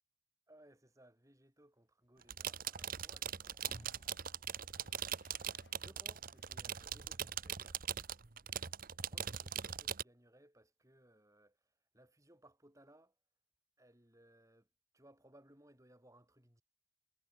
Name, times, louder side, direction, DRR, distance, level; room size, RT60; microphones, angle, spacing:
voice 1, 0.5-3.7 4.8-5.2 5.8-7.8 9.1-13.1 13.8-14.7 14.9-16.6, right 1 dB, 15° right, 4.9 m, -64 dB
sound 1, 2.2-10.0, right 9 dB, 45° right, 1.0 m, -41 dB
sound 2, 3.7-7.4 7.8-7.9, left 1 dB, 30° left, 5.5 m, -67 dB
sound 3, 3.8-4.2 4.7-5.8 6.3-7.4 8.0-8.3, left 3 dB, 55° left, 7.8 m, -71 dB
head